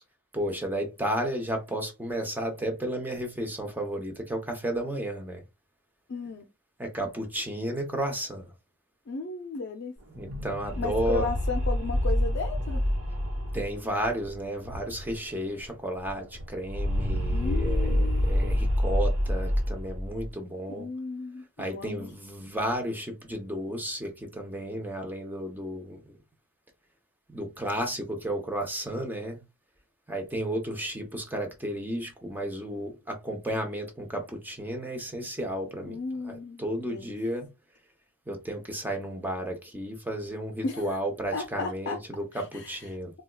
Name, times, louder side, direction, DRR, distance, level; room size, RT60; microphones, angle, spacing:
voice 1, 0.3-5.4 6.8-8.5 10.2-11.3 13.5-20.9 21.6-26.0 27.3-29.4 30.1-36.0 36.2-36.3 36.6-37.5 38.3-43.1, right 1 dB, 10° right, 0.7 m, -33 dB
voice 2, 6.1-6.5 9.1-9.9 10.8-12.8 17.3-18.3 20.7-22.1 35.8-37.1 40.6-42.0 42.3-43.0, left 4 dB, 55° left, 0.5 m, -35 dB
sound 1, 10.0-15.3 15.6-15.7 15.9-20.3, left 1 dB, 65° right, 1.1 m, -28 dB
4.1 x 2.3 x 2.2 m
head